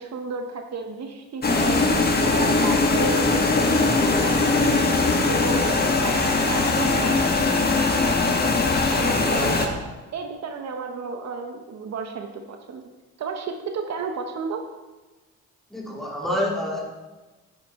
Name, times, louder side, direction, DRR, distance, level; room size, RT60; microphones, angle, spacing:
voice 1, 0.0-4.9 5.3-5.7 6.0-7.5 8.0-8.4 8.8-9.8 10.1-12.8 13.2-14.6, right 5 dB, 60° right, 4 dB, 1.0 m, -32 dB
sound 1, 1.4-9.7, left 3 dB, 30° left, 1.4 m, -21 dB
voice 2, 15.7-16.9, left 1 dB, ahead, -3 dB, 2.7 m, -27 dB
9.4 x 9.2 x 3.7 m, 1.2 s
cardioid pair, 90°, 30 cm